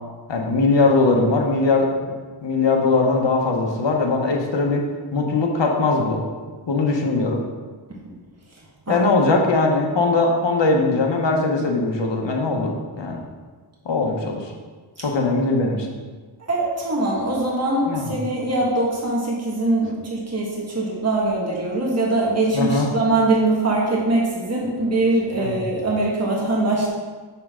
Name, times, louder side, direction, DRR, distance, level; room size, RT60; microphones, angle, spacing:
voice 1, 0.3-1.9 2.4-4.8 5.1-6.2 6.7-7.4 8.9-13.2 13.8-14.5 15.0-15.9 17.9-18.1 22.5-22.9 25.4-25.5, left 3 dB, 65° left, 1 dB, 1.1 m, -20 dB
voice 2, 8.9-9.3 16.4-26.9, right 2 dB, 30° right, -4 dB, 1.6 m, -22 dB
6.5 x 5.6 x 3.7 m, 1.4 s
cardioid pair, 55°, 47 cm